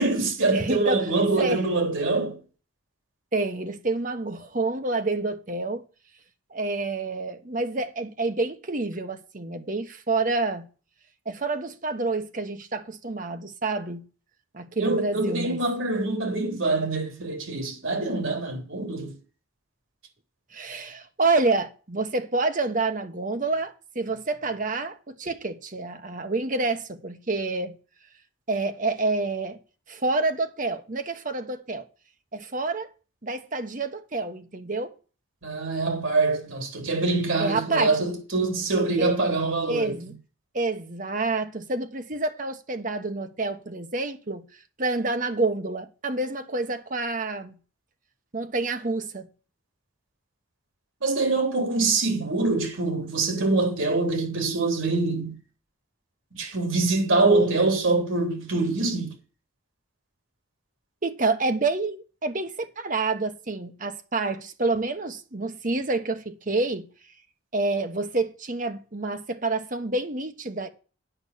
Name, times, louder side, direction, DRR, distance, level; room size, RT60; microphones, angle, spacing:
voice 1, 0.0-2.4 14.8-19.2 35.4-40.0 51.0-55.4 56.3-59.1, right 3 dB, 80° right, 3.3 m, -24 dB
voice 2, 0.5-1.0 1.4-1.6 3.3-5.8 6.5-10.7 11.2-14.0 14.5-15.6 20.5-27.7 28.5-29.6 29.9-31.9 32.3-32.9 33.2-34.9 37.4-38.0 39.0-39.1 39.7-40.1 40.5-44.4 44.8-47.6 48.3-49.3 61.0-66.9 67.5-70.7, right 3 dB, 40° right, 1.1 m, -28 dB
9.0 x 6.0 x 8.3 m
head